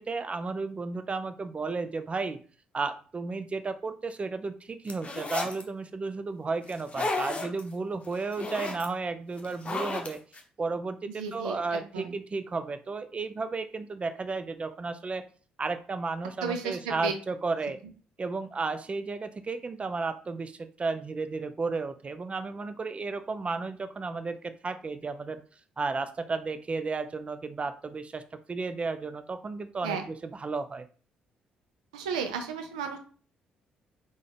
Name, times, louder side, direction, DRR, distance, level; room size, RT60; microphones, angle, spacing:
voice 1, 0.0-2.4 2.7-10.2 10.6-15.2 15.6-17.8 18.2-25.4 25.8-28.2 28.5-30.9, right 4 dB, 35° right, 10 dB, 0.5 m, -33 dB
sound 1, 4.9-5.6 6.7-7.6 8.0-8.9 9.4-10.4, left 3 dB, 35° left, 0.9 m, -33 dB
voice 2, 11.2-12.1 16.4-17.1 29.8-30.0 31.9-33.0, right 5 dB, 90° right, 7 dB, 0.5 m, -33 dB
3.7 x 2.5 x 3.4 m, 0.41 s
hypercardioid pair, 50°, 4 cm